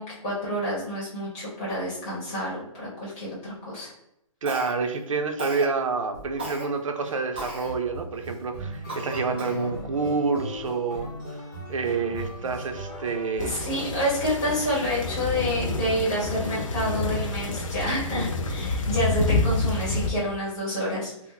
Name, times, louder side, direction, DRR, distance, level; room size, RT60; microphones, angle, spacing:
voice 1, 0.0-3.9 13.4-21.1, equal, 15° left, -8 dB, 1.2 m, -28 dB
voice 2, 4.4-11.1 11.7-13.6, right 4 dB, 65° right, 5 dB, 0.6 m, -28 dB
Cough, 4.5-5.0 5.4-5.7 6.4-6.7 7.4-7.7 8.2-8.3 8.9-9.7, right 1 dB, 20° right, 0.4 m, -35 dB
sound 1, 6.1-6.5 7.0-14.2, equal, 35° left, 0.8 m, -38 dB
sound 2, 13.4-20.1, left 2 dB, 65° left, 0.6 m, -28 dB
2.9 x 2.1 x 3.7 m, 0.82 s
hypercardioid pair, 180°, 18 cm